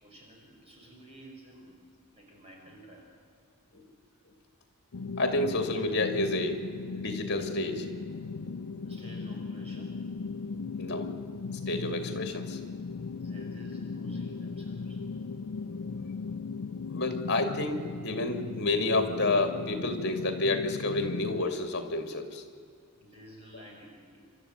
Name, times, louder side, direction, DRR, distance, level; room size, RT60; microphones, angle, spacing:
voice 1, 0.0-1.8 2.1-3.1 8.8-10.0 13.1-15.0 23.0-24.2, equal, 25° right, -1 dB, 5.2 m, -51 dB
sound 1, 4.9-21.4, left 4 dB, 75° left, 0.5 m, -37 dB
voice 2, 5.2-7.9 10.8-11.1 11.5-12.6 16.9-22.4, left 2 dB, 50° left, 7 dB, 2.4 m, -30 dB
27.0 x 13.0 x 9.0 m, 2.3 s
head